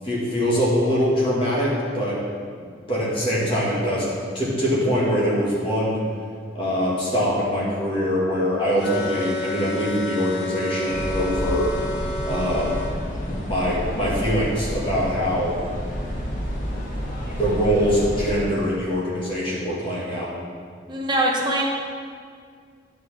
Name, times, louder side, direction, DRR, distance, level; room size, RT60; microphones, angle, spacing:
voice 1, 0.0-2.2 2.6-6.0 6.5-11.7 12.2-12.8 13.3-15.5 17.3-20.3, equal, 30° left, -7 dB, 1.9 m, -23 dB
sound 1, 8.8-12.9, left 1 dB, 60° left, 0.8 m, -30 dB
sound 2, 10.9-18.4, equal, 45° left, 1.3 m, -30 dB
voice 2, 20.9-21.6, right 1 dB, 25° right, -2 dB, 1.0 m, -22 dB
9.3 x 5.0 x 4.4 m, 2.1 s
head